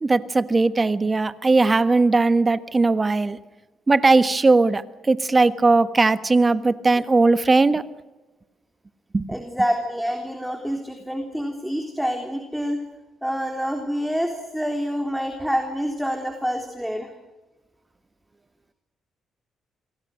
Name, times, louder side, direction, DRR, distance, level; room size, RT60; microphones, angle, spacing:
voice 1, 0.0-3.4 3.9-4.8 5.1-7.8 9.1-9.3, right 3 dB, 25° right, 13 dB, 1.4 m, -18 dB
voice 2, 9.3-12.8 13.2-17.1, equal, ahead, 4 dB, 3.5 m, -27 dB
27.5 x 22.5 x 6.5 m, 1.1 s
cardioid pair, 90°, 0 cm